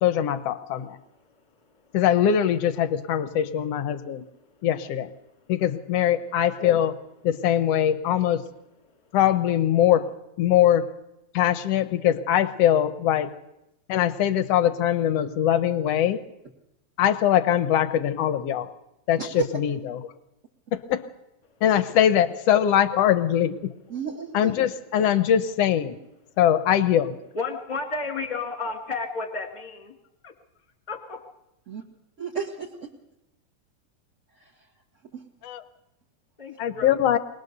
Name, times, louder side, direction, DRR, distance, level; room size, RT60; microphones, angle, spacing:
voice 1, 0.0-1.0 1.9-4.2 4.6-5.1 5.5-7.0 7.2-8.4 9.1-10.1 10.4-10.9 11.3-13.3 13.9-16.2 17.0-18.7 19.1-19.8 20.7-21.0 21.6-23.7 24.3-26.0 26.4-27.2 35.4-35.6 36.6-37.2, left 10 dB, 65° left, 12 dB, 1.7 m, -22 dB
voice 2, 0.7-2.0 4.0-4.7 5.2-5.5 8.9-9.2 21.4-21.6 26.3-26.4 27.3-29.9 30.2-30.3 30.9-31.2 36.4-37.0, left 3 dB, 15° left, 4 dB, 1.8 m, -34 dB
voice 3, 19.2-19.5 21.6-21.8 23.9-24.5 31.7-31.8 32.2-32.9 34.3-34.7 35.1-35.2, right 6 dB, 30° right, -3 dB, 1.7 m, -33 dB
24.0 x 19.5 x 6.7 m, 0.89 s
omnidirectional pair, 3.7 m